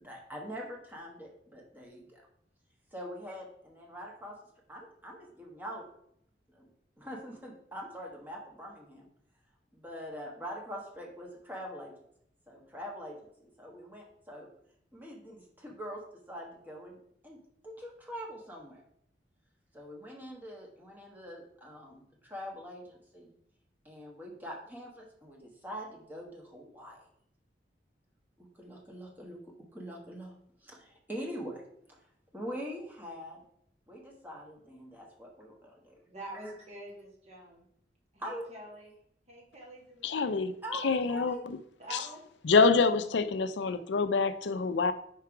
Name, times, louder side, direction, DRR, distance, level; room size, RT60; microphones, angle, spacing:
voice 1, 0.0-2.2 2.9-4.4 4.7-5.9 6.5-6.7 7.0-9.1 9.7-11.9 12.5-14.5 14.9-18.8 19.7-23.3 23.8-27.0 28.4-30.3 30.6-31.6 31.9-32.0 32.3-33.4 33.9-36.0 36.4-36.5 38.2-38.5 40.6-41.4 41.9-42.0, equal, 10° right, 1.3 m, -44 dB
voice 2, 36.1-37.6 38.1-38.9 39.3-40.5 41.8-42.8, right 1 dB, 40° right, 1.8 m, -47 dB
voice 3, 40.0-40.5 40.8-41.6 42.4-44.9, left 4 dB, 80° left, 0.5 m, -26 dB
4.6 x 4.6 x 4.8 m
head